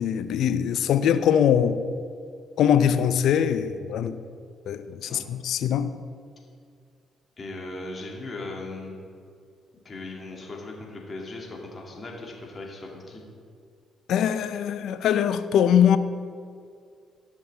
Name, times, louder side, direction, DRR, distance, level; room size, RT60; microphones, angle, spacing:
voice 1, 0.0-1.8 2.6-4.2 4.7-5.9 14.1-16.0, left 9 dB, 75° left, 0.5 m, -22 dB
voice 2, 7.4-9.0 9.8-13.2, left 2 dB, 40° left, 2.2 m, -38 dB
15.0 x 6.3 x 3.4 m
supercardioid pair, 60°, 0 cm